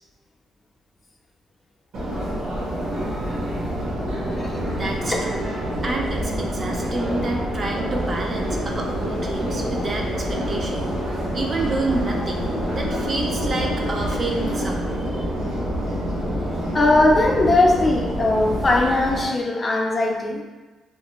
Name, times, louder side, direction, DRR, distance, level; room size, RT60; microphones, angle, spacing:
Subway metro underground, 1.9-19.3, equal, 75° right, 0.9 m, -27 dB
voice 1, 4.7-5.5 5.8-10.9 11.3-15.2, right 2 dB, 40° right, 0 dB, 0.4 m, -29 dB
sound 1, 7.9-14.6, left 2 dB, 90° left, 0.4 m, -37 dB
voice 2, 16.7-20.4, left 2 dB, 30° left, 0 dB, 0.4 m, -19 dB
2.4 x 2.1 x 3.0 m, 1.2 s
cardioid pair, 90°, 0 cm